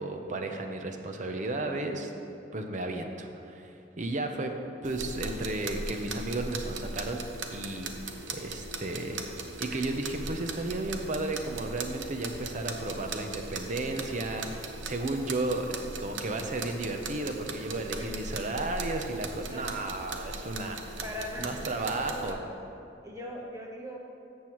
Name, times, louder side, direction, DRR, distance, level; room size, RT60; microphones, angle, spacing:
voice 1, 0.0-2.1 2.5-4.6 4.8-7.2 7.5-7.9 8.3-9.2 9.6-21.0 21.4-22.4, right 2 dB, 45° right, 5 dB, 0.7 m, -33 dB
sound 1, 4.8-22.3, right 3 dB, 85° right, 0.8 m, -39 dB
voice 2, 8.3-8.8 17.9-18.1 19.5-19.8 21.0-22.4 23.0-24.0, left 1 dB, 20° right, -1 dB, 1.1 m, -41 dB
13.5 x 7.4 x 3.1 m, 2.7 s
head